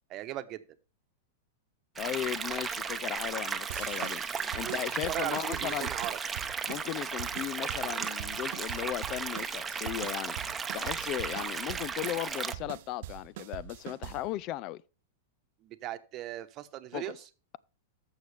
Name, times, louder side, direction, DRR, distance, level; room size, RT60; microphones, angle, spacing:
voice 1, 0.1-0.6 4.6-4.8 5.1-6.2 15.6-17.2, right 14 dB, 40° right, 1.0 m, -38 dB
voice 2, 2.0-4.2 4.5-5.9 6.7-14.8 16.9-17.0, left 14 dB, 45° left, 0.3 m, -36 dB
sound 1, 2.0-12.5, right 5 dB, 15° right, 0.9 m, -35 dB
sound 2, 3.7-14.4, right 14 dB, 60° right, 0.5 m, -44 dB
14.5 x 6.3 x 3.4 m
hypercardioid pair, 115°, 0 cm